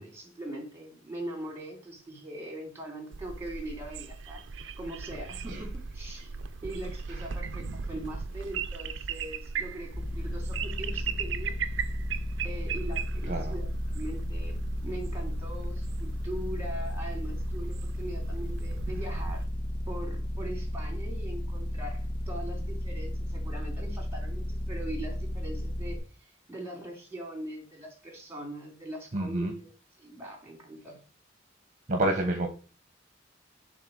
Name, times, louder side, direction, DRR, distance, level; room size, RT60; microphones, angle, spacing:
voice 1, 0.0-4.4 4.8-6.3 6.6-11.5 12.4-19.5 19.9-29.7 30.0-31.0, right 1 dB, 15° right, 2 dB, 3.0 m, -41 dB
sound 1, 3.1-19.4, right 5 dB, 75° right, 0.6 m, -38 dB
sound 2, 9.9-26.0, equal, 70° left, 2.0 m, -34 dB
voice 2, 13.2-13.6 29.1-29.5 31.9-32.5, right 1 dB, 40° right, 4 dB, 1.1 m, -29 dB
7.0 x 3.8 x 6.4 m, 0.35 s
head